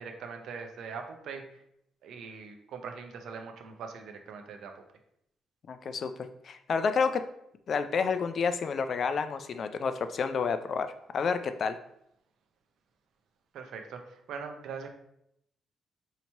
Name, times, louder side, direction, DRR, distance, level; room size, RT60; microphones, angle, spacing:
voice 1, 0.0-1.4 2.0-4.7 13.5-14.9, right 5 dB, 75° right, 5 dB, 0.5 m, -41 dB
voice 2, 5.7-7.2 7.7-11.8, left 5 dB, 55° left, 10 dB, 0.3 m, -30 dB
2.9 x 2.8 x 4.4 m, 0.76 s
cardioid pair, 90°, 0 cm